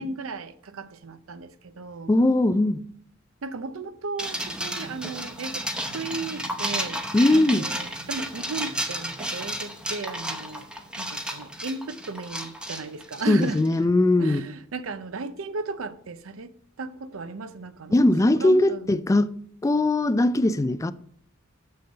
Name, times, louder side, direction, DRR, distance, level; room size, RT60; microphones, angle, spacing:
voice 1, 0.0-2.1 3.4-7.0 7.3-10.7 11.0-13.9 14.2-16.5 16.8-18.1 18.3-19.0, right 3 dB, 85° right, 0.6 m, -35 dB
voice 2, 2.1-2.8 7.1-7.7 13.3-14.4 17.9-19.3 19.6-20.9, left 2 dB, 15° left, 0.3 m, -20 dB
sound 1, 4.2-13.7, equal, 5° right, 0.8 m, -32 dB
7.0 x 6.5 x 5.4 m
head